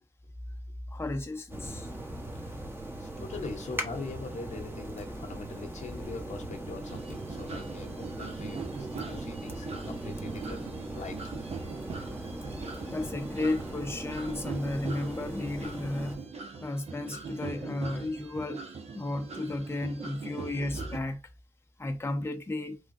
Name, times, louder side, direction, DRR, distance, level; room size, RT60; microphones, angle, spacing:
voice 1, 0.9-1.9 12.5-16.2 16.6-18.6 18.9-21.2 21.8-22.8, left 2 dB, 20° left, 0.6 m, -33 dB
sound 1, 1.5-16.2, right 1 dB, 20° right, 1.1 m, -39 dB
voice 2, 2.3-2.7 3.0-11.2, left 3 dB, 75° left, 0.8 m, -42 dB
sound 2, 6.9-21.0, right 5 dB, 60° right, 0.7 m, -42 dB
3.3 x 2.2 x 2.6 m
supercardioid pair, 40°, 12 cm